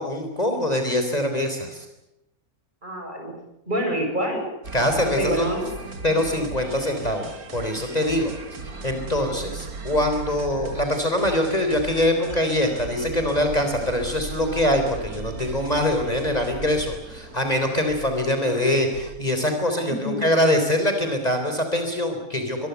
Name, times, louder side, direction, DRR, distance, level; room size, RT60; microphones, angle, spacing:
voice 1, 0.0-1.9 4.7-5.5 6.0-7.3 7.5-8.3 8.6-22.7, left 1 dB, 25° left, 5 dB, 4.1 m, -23 dB
voice 2, 2.8-3.3 3.7-4.4 5.1-5.6 19.9-20.2, equal, 30° right, 3 dB, 7.6 m, -26 dB
sound 1, 4.6-19.2, right 3 dB, 85° right, 2.7 m, -37 dB
25.0 x 22.0 x 8.3 m, 0.89 s
omnidirectional pair, 1.5 m